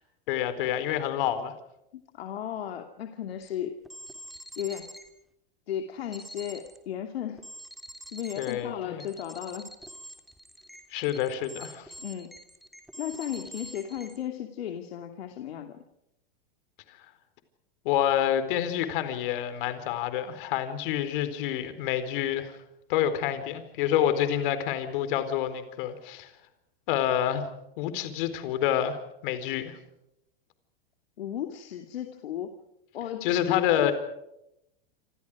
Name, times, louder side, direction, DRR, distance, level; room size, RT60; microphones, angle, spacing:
voice 1, 0.3-1.5 8.4-9.0 10.9-11.9 17.8-22.6 22.9-26.3 26.9-27.5 27.8-29.0 29.2-29.8 33.2-33.9, left 10 dB, 60° left, 11 dB, 4.3 m, -28 dB
voice 2, 1.9-3.8 4.6-4.9 5.7-7.4 8.1-9.7 12.0-12.3 13.0-15.8 31.2-32.5 32.9-33.9, left 10 dB, 85° left, 5 dB, 2.7 m, -35 dB
sound 1, 3.4-3.5 3.9-5.1 6.1-6.8 7.4-8.5 9.0-14.2, equal, ahead, 3.2 m, -45 dB
27.5 x 27.5 x 5.0 m, 0.83 s
supercardioid pair, 135°, 30 cm